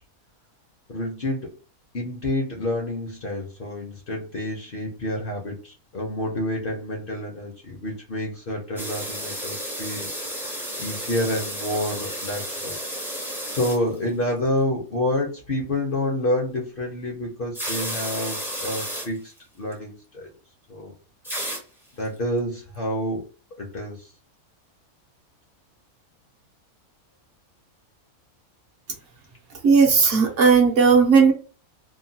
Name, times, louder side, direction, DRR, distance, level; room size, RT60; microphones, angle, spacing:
voice 1, 0.9-1.5 1.9-10.1 10.8-12.8 13.5-19.3 19.6-20.3 20.7-20.9 22.0-23.2 23.6-24.1, left 1 dB, 50° left, 0 dB, 0.7 m, -28 dB
sound 1, 8.8-14.0 14.3-14.5 17.5-19.1 19.4-19.5 19.7-19.8 21.2-21.6 22.0-22.1, equal, 5° right, 0.4 m, -32 dB
voice 2, 29.6-31.3, right 5 dB, 65° right, 1 dB, 0.9 m, -16 dB
2.9 x 2.2 x 2.7 m, 0.36 s
omnidirectional pair, 1.5 m